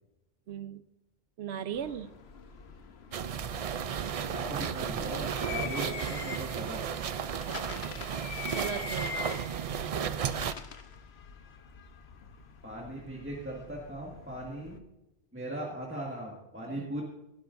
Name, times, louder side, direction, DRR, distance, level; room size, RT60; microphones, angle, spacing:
voice 1, 0.5-0.8 1.4-2.1 7.5-7.7 8.5-10.4 16.7-16.9, right 8 dB, 80° right, 13 dB, 0.9 m, -39 dB
sound 1, 1.7-14.8, left 6 dB, 75° left, 1.1 m, -44 dB
sound 2, 3.1-10.5, right 7 dB, 55° right, 0.4 m, -34 dB
voice 2, 4.3-6.9 12.6-14.8 15.3-17.0, right 1 dB, 10° right, -3 dB, 1.8 m, -39 dB
17.0 x 11.5 x 2.6 m, 0.95 s
omnidirectional pair, 1.1 m